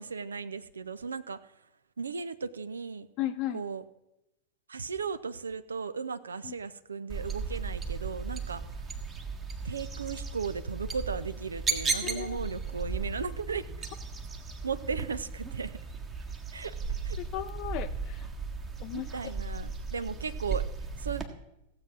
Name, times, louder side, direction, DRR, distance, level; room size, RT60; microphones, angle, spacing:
voice 1, 0.0-1.4 2.0-3.1 3.5-3.8 4.7-8.6 9.6-13.7 14.6-15.8 16.5-16.7 17.0-17.2 18.9-20.6 21.0-21.2, right 5 dB, 75° right, 13 dB, 0.6 m, -36 dB
voice 2, 3.2-3.6 6.4-6.6 12.0-12.5 17.2-18.2 18.8-19.1, left 13 dB, 40° left, 8 dB, 0.5 m, -35 dB
sound 1, 7.1-21.3, right 4 dB, 20° right, 1.5 m, -36 dB
15.5 x 7.7 x 6.0 m, 0.88 s
figure-of-eight pair, 90°, 0 cm